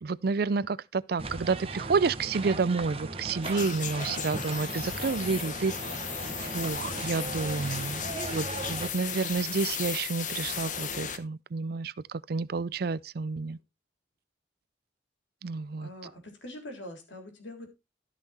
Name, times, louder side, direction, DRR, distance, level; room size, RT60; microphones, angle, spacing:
voice 1, 0.0-5.7 6.4-8.0 8.3-13.6 15.4-15.9, right 4 dB, 55° right, 0.4 m, -30 dB
sound 1, 1.2-8.9, right 2 dB, 30° right, 1.2 m, -38 dB
sound 2, 3.4-11.2, left 7 dB, 45° left, 1.1 m, -36 dB
voice 2, 15.8-17.7, left 1 dB, 80° left, 3.6 m, -43 dB
13.5 x 5.8 x 4.2 m
head